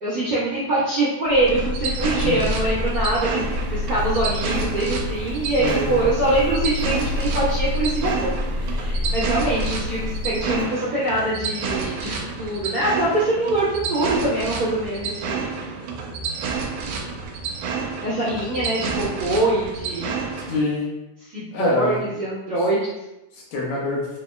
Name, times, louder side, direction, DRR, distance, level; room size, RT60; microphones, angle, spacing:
voice 1, 0.0-15.5 18.0-20.2 21.2-22.9, right 1 dB, 60° right, -11 dB, 1.2 m, -24 dB
sound 1, 1.3-10.6, left 1 dB, 50° left, 1.4 m, -28 dB
sound 2, 1.4-20.6, right 5 dB, 85° right, 2.3 m, -30 dB
voice 2, 5.6-6.0 20.5-20.9 21.5-22.0 23.3-24.1, left 2 dB, 75° left, -4 dB, 2.6 m, -25 dB
6.7 x 2.8 x 2.2 m, 0.96 s
omnidirectional pair, 4.1 m